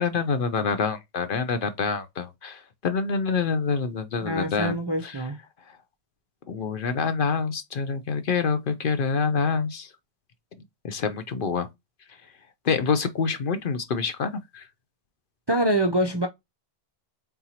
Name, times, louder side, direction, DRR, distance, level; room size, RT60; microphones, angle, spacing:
voice 1, 0.0-5.2 6.5-9.9 10.8-11.7 12.6-14.7, left 5 dB, 55° left, 0.8 m, -26 dB
voice 2, 4.2-5.4 15.5-16.3, right 1 dB, 30° right, 0.5 m, -25 dB
4.4 x 3.8 x 2.8 m
omnidirectional pair, 1.1 m